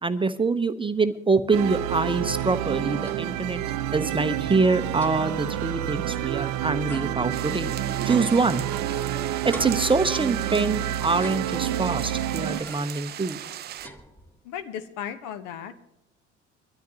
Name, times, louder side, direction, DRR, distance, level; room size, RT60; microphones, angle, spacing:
voice 1, 0.0-3.6 3.9-8.6 9.4-13.4, right 3 dB, 15° right, 10 dB, 0.8 m, -25 dB
sound 1, 1.5-12.6, right 12 dB, 55° right, 0.8 m, -29 dB
sound 2, 2.2-3.5 3.8-3.9 4.2-6.4 6.9-9.1 9.5-10.6 11.1-12.0 12.5-13.1 13.4-14.6, right 1 dB, 5° left, 1.8 m, -46 dB
sound 3, 7.3-13.9, right 12 dB, 30° right, 0.4 m, -38 dB
voice 2, 14.4-15.8, left 9 dB, 60° left, 11 dB, 1.2 m, -35 dB
22.5 x 13.0 x 2.8 m, 0.86 s
figure-of-eight pair, 60°, 35 cm